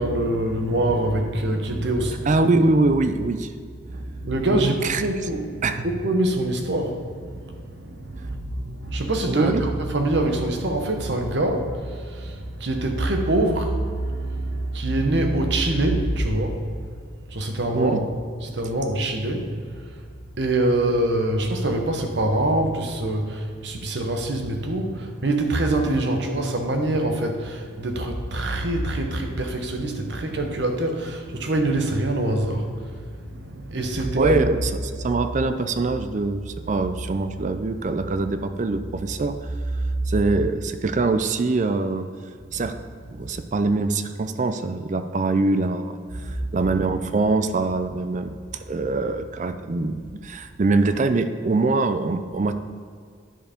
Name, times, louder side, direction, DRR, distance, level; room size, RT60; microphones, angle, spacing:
voice 1, 0.0-2.4 3.9-16.6 17.3-18.1 18.4-20.0 20.4-34.5 40.1-40.3 42.5-42.7 43.1-43.3 46.2-46.7 50.7-50.8, right 1 dB, 60° right, 4 dB, 1.0 m, -25 dB
voice 2, 2.3-3.5 4.5-5.0 5.6-5.8 9.2-9.7 17.7-18.0 34.2-39.5 40.1-42.1 42.5-42.7 43.1-46.0 46.2-48.3 48.7-52.5, right 3 dB, 40° right, 9 dB, 0.4 m, -23 dB
10.0 x 4.7 x 5.1 m, 2.1 s
head